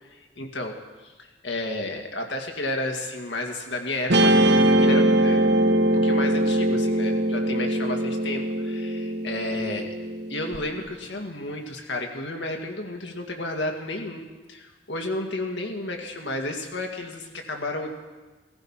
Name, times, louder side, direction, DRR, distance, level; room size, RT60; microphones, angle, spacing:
voice 1, 0.2-0.8 1.0-5.4 5.9-9.9 10.3-17.9, left 2 dB, 80° left, 2 dB, 2.2 m, -32 dB
Guitar, 4.1-10.6, right 1 dB, 65° right, 1.1 m, -21 dB
16.5 x 14.5 x 5.8 m, 1.2 s
head